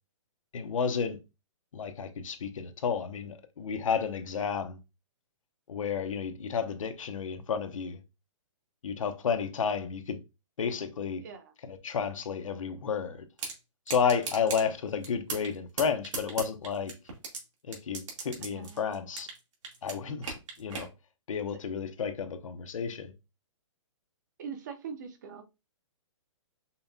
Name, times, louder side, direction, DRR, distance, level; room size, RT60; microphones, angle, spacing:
voice 1, 0.5-1.2 1.7-4.8 5.7-8.0 8.8-10.2 10.6-11.2 11.7-13.2 13.9-16.9 17.7-19.3 19.8-20.9 21.3-23.1, left 6 dB, 85° left, 0.9 m, -31 dB
voice 2, 11.2-11.5 18.5-19.0 24.4-25.4, right 6 dB, 35° right, 0.7 m, -42 dB
sound 1, 13.4-13.5 13.9-14.6 15.0-15.5 15.8-17.4 17.7-19.4 19.6-20.9, right 4 dB, 75° right, 1.9 m, -36 dB
5.5 x 2.3 x 2.7 m
hypercardioid pair, 170°, 16 cm